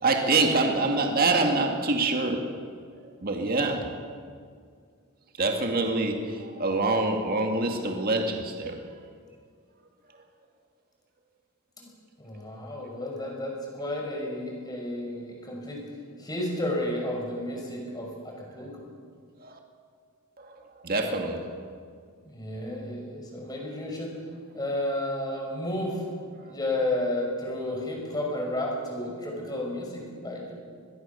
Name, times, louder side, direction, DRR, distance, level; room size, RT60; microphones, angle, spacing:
voice 1, 0.0-2.6 3.2-3.9 5.4-8.8 19.4-19.6 20.4-20.5 20.8-21.6, right 3 dB, 40° right, 3 dB, 2.2 m, -25 dB
voice 2, 12.2-15.8 16.2-18.8 22.3-24.1 24.5-26.0 26.4-30.5, left 1 dB, 20° left, -1 dB, 6.0 m, -32 dB
23.0 x 22.0 x 6.9 m, 2.1 s
head